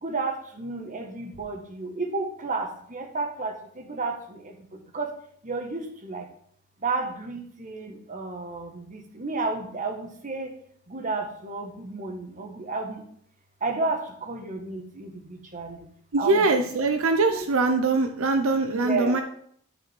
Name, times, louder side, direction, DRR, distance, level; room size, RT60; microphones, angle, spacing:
voice 1, 0.0-4.4 4.9-5.1 5.4-6.2 6.8-10.5 10.9-13.0 13.6-15.8 16.2-16.7 17.3-17.4 18.7-19.2, right 3 dB, 40° right, 4 dB, 1.4 m, -32 dB
voice 2, 16.1-19.2, right 3 dB, 75° right, 6 dB, 0.7 m, -22 dB
10.5 x 5.1 x 4.5 m, 0.63 s
head